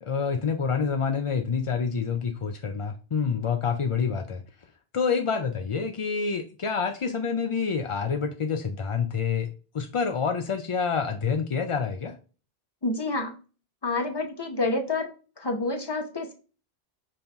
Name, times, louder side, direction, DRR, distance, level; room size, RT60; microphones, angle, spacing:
voice 1, 0.0-4.4 4.9-9.5 9.7-12.2, left 6 dB, 50° left, 0.4 m, -27 dB
voice 2, 12.8-13.3 13.8-15.1 15.4-16.3, left 2 dB, 25° left, 0.9 m, -28 dB
5.4 x 2.8 x 3.4 m
omnidirectional pair, 1.0 m